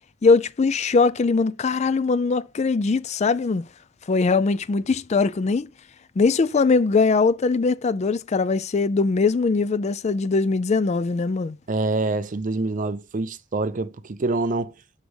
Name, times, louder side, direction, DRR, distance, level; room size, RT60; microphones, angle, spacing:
voice 1, 0.2-3.6 4.1-5.7 6.2-11.6, left 4 dB, 35° left, 0.4 m, -21 dB
voice 2, 11.7-14.7, right 2 dB, 40° right, 0.6 m, -26 dB
6.4 x 5.1 x 6.3 m
head